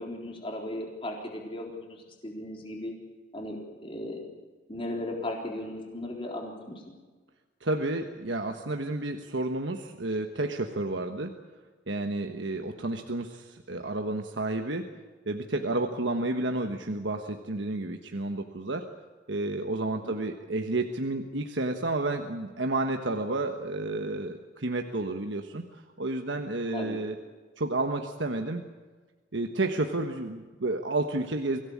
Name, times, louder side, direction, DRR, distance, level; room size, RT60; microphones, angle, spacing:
voice 1, 0.0-2.9 3.3-4.3 4.7-6.8 12.7-12.8 20.0-20.1 26.7-27.0, left 1 dB, 30° left, 0 dB, 3.8 m, -36 dB
voice 2, 7.6-11.4 11.9-14.9 15.3-18.9 19.3-27.1 27.6-28.7 29.3-31.6, right 2 dB, 70° right, 5 dB, 1.4 m, -31 dB
24.5 x 17.0 x 8.6 m, 1.3 s
head